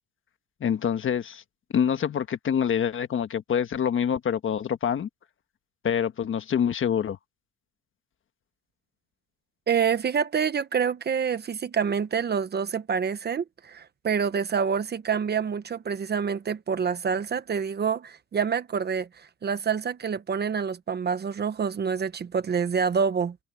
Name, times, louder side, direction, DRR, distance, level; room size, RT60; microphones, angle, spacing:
voice 1, 0.6-1.4 1.7-5.1 5.8-7.2, left 8 dB, 35° left, 1.3 m, -26 dB
voice 2, 9.7-23.4, right 6 dB, 30° right, 1.0 m, -27 dB
cardioid pair, 145°, 35 cm